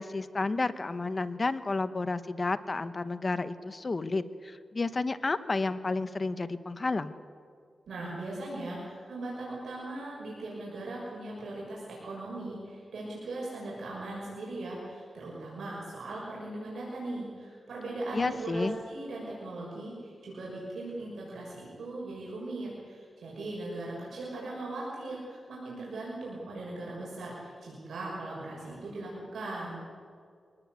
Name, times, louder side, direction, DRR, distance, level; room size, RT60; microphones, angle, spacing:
voice 1, 0.0-7.1 18.1-18.7, left 3 dB, 40° left, 12 dB, 1.2 m, -31 dB
voice 2, 7.9-29.8, right 2 dB, 85° right, -5 dB, 6.5 m, -39 dB
24.5 x 19.0 x 8.2 m, 2.2 s
cardioid pair, 75°, 0 cm